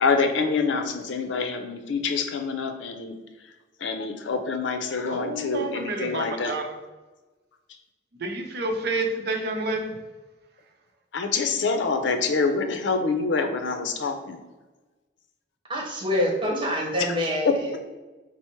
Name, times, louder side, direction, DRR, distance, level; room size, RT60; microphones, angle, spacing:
voice 1, 0.0-3.1 3.8-6.5 11.1-14.4, left 4 dB, 90° left, 7 dB, 0.5 m, -26 dB
voice 2, 5.1-6.8 8.2-9.9, right 2 dB, 60° right, 3 dB, 0.6 m, -29 dB
voice 3, 15.7-17.8, left 1 dB, 30° right, -2 dB, 1.1 m, -26 dB
4.4 x 2.0 x 4.4 m, 1.2 s
head